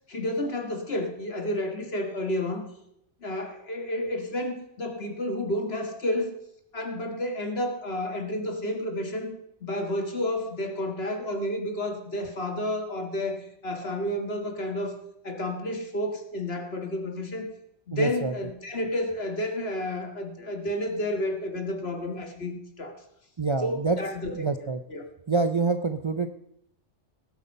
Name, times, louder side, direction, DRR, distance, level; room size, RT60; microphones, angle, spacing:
voice 1, 0.1-2.6 3.2-6.3 6.7-9.3 9.6-14.9 15.2-17.5 17.9-23.0 23.6-24.5 24.9-25.0, left 1 dB, 55° left, 5 dB, 2.1 m, -31 dB
voice 2, 17.9-18.3 23.4-24.0 24.3-24.8 25.3-26.3, right 4 dB, 35° right, 8 dB, 0.5 m, -26 dB
18.5 x 8.3 x 5.4 m, 0.77 s
omnidirectional pair, 1.3 m